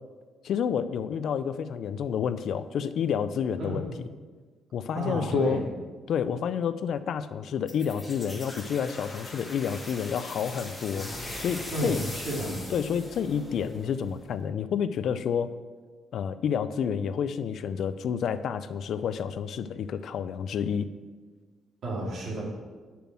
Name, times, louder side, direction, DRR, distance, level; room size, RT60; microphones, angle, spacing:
voice 1, 0.4-3.9 4.7-5.6 6.1-11.1 11.4-12.0 12.7-15.5 16.1-20.9, left 7 dB, 70° left, 13 dB, 0.4 m, -29 dB
voice 2, 3.6-3.9 4.9-5.6 11.7-12.6 21.8-22.4, right 1 dB, 60° right, -3 dB, 3.0 m, -31 dB
sound 1, 7.7-14.3, left 1 dB, 15° left, 2.2 m, -40 dB
6.8 x 6.1 x 7.5 m, 1.4 s
cardioid pair, 90°, 0 cm